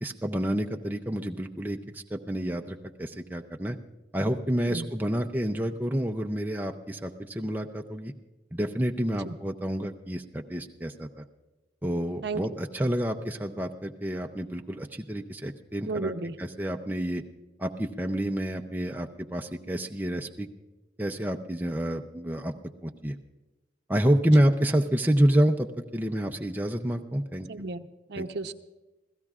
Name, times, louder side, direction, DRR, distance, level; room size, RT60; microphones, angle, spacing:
voice 1, 0.0-3.8 4.1-8.1 8.5-11.2 11.8-17.2 17.6-20.5 21.0-22.5 22.8-23.2 23.9-27.5 28.2-28.3, right 1 dB, 10° right, 3 dB, 0.5 m, -28 dB
voice 2, 15.9-16.4 27.5-27.8 28.1-28.5, right 3 dB, 60° right, 9 dB, 0.8 m, -33 dB
28.0 x 16.0 x 2.4 m, 1.1 s
head